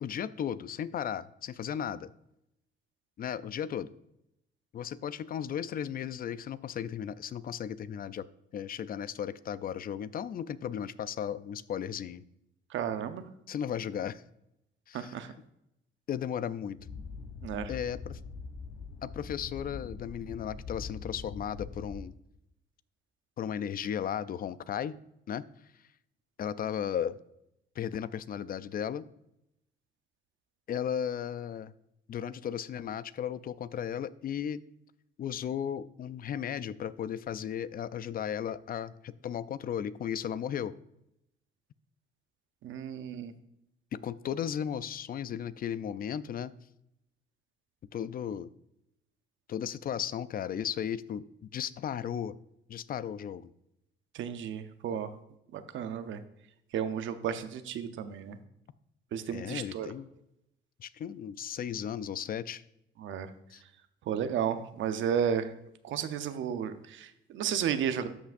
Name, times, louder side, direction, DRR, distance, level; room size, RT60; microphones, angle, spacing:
voice 1, 0.0-2.1 3.2-3.9 4.7-8.2 8.5-12.2 13.5-14.2 14.9-15.2 16.1-16.8 17.7-18.2 19.0-22.1 23.4-24.9 25.3-25.4 26.4-27.1 27.8-29.1 30.7-31.7 32.1-34.6 35.2-40.7 43.9-46.5 47.9-48.5 49.5-52.3 52.7-53.5 59.3-60.1 60.8-62.6 63.5-63.6, left 9 dB, 45° left, 16 dB, 0.4 m, -35 dB
voice 2, 12.7-13.2 14.9-15.3 17.4-17.7 42.6-43.3 54.1-55.1 55.5-56.2 56.7-58.4 59.1-59.9 63.0-63.3 64.1-65.5 65.8-68.1, right 8 dB, 75° right, 10 dB, 0.7 m, -33 dB
sound 1, 16.8-22.0, left 4 dB, 90° left, 0.9 m, -43 dB
12.5 x 5.8 x 2.6 m, 0.82 s
cardioid pair, 90°, 20 cm